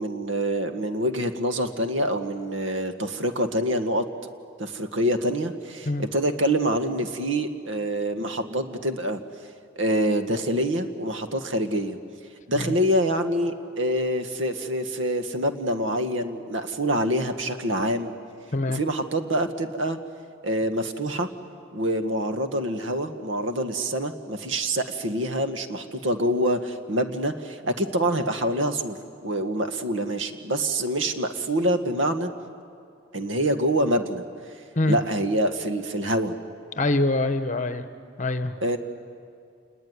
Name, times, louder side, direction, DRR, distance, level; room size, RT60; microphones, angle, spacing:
voice 1, 0.0-4.0 4.6-9.2 9.7-12.0 12.5-18.1 18.7-20.0 20.4-21.3 21.7-32.3 33.1-34.2 34.9-36.3 38.6-38.8, right 1 dB, 80° right, 8 dB, 1.6 m, -26 dB
voice 2, 36.8-37.8 38.2-38.5, left 2 dB, 40° left, 10 dB, 1.1 m, -24 dB
28.0 x 20.5 x 9.7 m, 2.3 s
head